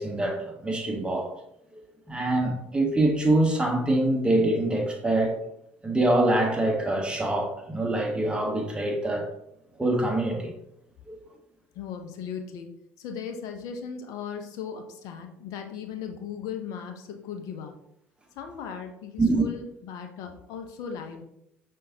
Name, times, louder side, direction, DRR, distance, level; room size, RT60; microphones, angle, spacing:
voice 1, 0.0-1.3 1.7-1.8 2.1-5.4 5.8-9.3 9.8-10.5 11.1-11.2 19.2-19.4, right 2 dB, 15° right, 1.2 m, -24 dB
voice 2, 11.7-12.7 13.0-17.7 18.4-21.2, left 7 dB, 65° left, 0.7 m, -37 dB
5.2 x 3.6 x 2.8 m
hypercardioid pair, 60°, 7 cm